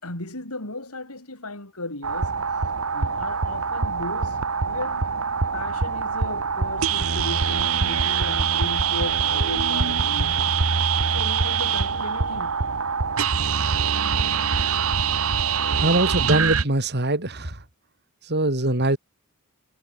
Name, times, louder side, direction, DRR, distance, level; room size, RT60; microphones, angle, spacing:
voice 1, 0.0-2.3 2.9-4.4 4.6-5.0 5.5-10.6 11.1-12.6, left 2 dB, 90° left, 7.6 m, -36 dB
sound 1, 2.0-16.6, right 6 dB, 70° right, 1.4 m, -24 dB
voice 2, 15.8-17.5 18.3-19.0, right 2 dB, 50° right, 4.0 m, -22 dB
head